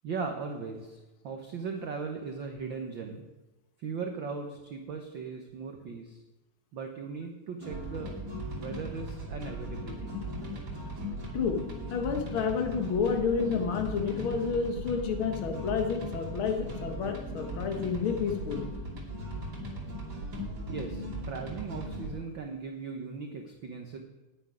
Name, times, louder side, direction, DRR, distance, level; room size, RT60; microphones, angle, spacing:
voice 1, 0.0-1.0 1.2-3.3 3.8-6.2 6.7-8.1 8.6-10.1 20.7-24.0, right 5 dB, 65° right, 3 dB, 1.2 m, -38 dB
sound 1, 7.6-22.2, equal, 35° right, 2.9 m, -38 dB
voice 2, 11.9-18.7, left 6 dB, 50° left, 4 dB, 2.0 m, -30 dB
9.8 x 9.2 x 9.6 m, 1.1 s
omnidirectional pair, 3.6 m